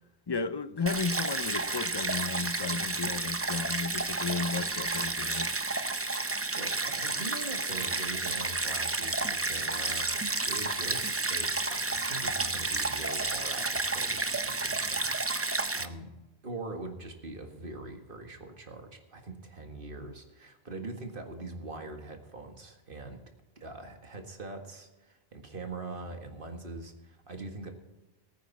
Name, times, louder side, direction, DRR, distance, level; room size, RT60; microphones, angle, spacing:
voice 1, 0.3-5.6, left 4 dB, 40° left, 0.3 m, -34 dB
Stream, 0.9-15.9, right 3 dB, 15° right, 0.5 m, -31 dB
voice 2, 6.2-16.1 16.4-23.2 23.6-27.7, right 2 dB, 55° right, 2.0 m, -43 dB
19.0 x 9.3 x 4.1 m
omnidirectional pair, 1.1 m